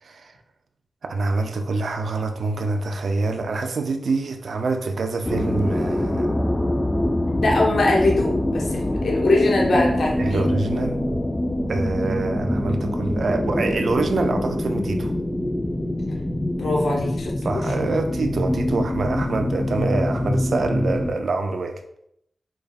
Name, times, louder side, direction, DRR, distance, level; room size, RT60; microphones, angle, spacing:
voice 1, 0.0-0.3 1.0-6.3 10.2-11.1 11.7-15.1 17.4-21.8, right 3 dB, 65° right, 5 dB, 0.4 m, -25 dB
sound 1, 5.2-21.1, left 1 dB, 10° left, 0.3 m, -24 dB
voice 2, 7.4-10.5 16.6-17.6, left 2 dB, 70° left, -2 dB, 0.7 m, -22 dB
3.8 x 3.4 x 2.3 m, 0.74 s
wide cardioid pair, 155°, 0 cm